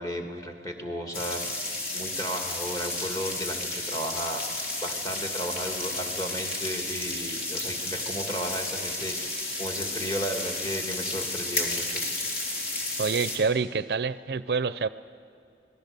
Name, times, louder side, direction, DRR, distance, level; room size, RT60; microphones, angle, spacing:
voice 1, 0.0-1.4 1.9-4.4 4.8-12.0, equal, 20° left, 3 dB, 2.1 m, -34 dB
sound 1, 1.1-13.4, left 2 dB, 55° left, 3.7 m, -32 dB
voice 2, 13.0-14.9, right 5 dB, 60° right, 15 dB, 0.5 m, -27 dB
25.0 x 18.0 x 6.8 m, 2.5 s
head